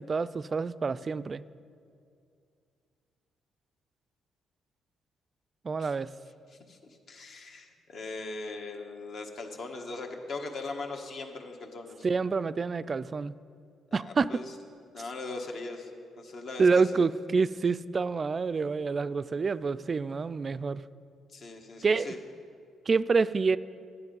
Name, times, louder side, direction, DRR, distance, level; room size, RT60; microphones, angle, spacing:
voice 1, 0.0-1.4 5.6-6.1 12.0-13.3 13.9-14.4 16.6-20.8 21.8-22.1 22.9-23.6, right 4 dB, 35° right, 15 dB, 0.3 m, -27 dB
voice 2, 6.7-12.1 13.9-14.5 14.9-15.9 16.2-16.7 21.3-22.2, left 3 dB, 55° left, 3 dB, 1.3 m, -40 dB
12.5 x 9.7 x 5.3 m, 2.4 s
cardioid pair, 90°, 0 cm